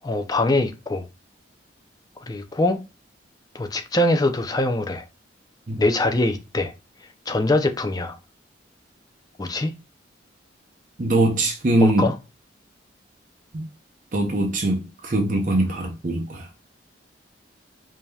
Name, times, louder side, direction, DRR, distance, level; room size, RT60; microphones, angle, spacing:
voice 1, 0.0-1.1 2.3-2.8 3.5-5.0 5.8-6.7 7.3-8.2 9.4-9.7 11.8-12.1, left 2 dB, 20° left, 0.5 m, -23 dB
voice 2, 11.0-12.1 13.5-13.6 14.1-16.5, right 1 dB, 45° right, 0.7 m, -22 dB
5.0 x 2.8 x 2.3 m
head